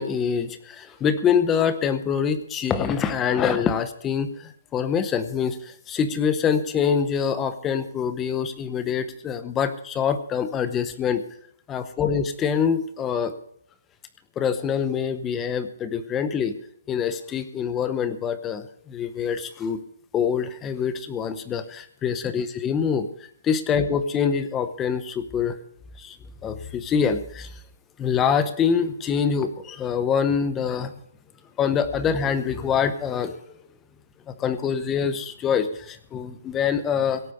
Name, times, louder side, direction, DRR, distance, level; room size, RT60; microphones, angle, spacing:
voice 1, 0.0-11.2 11.7-13.3 14.4-16.5 16.9-19.8 20.1-23.1 23.4-25.6 26.0-26.2 26.4-27.5 28.0-30.9 31.6-33.4 34.3-37.2, left 7 dB, 10° left, 11 dB, 0.8 m, -25 dB
17.0 x 8.3 x 6.6 m, 0.68 s
hypercardioid pair, 170°, 0 cm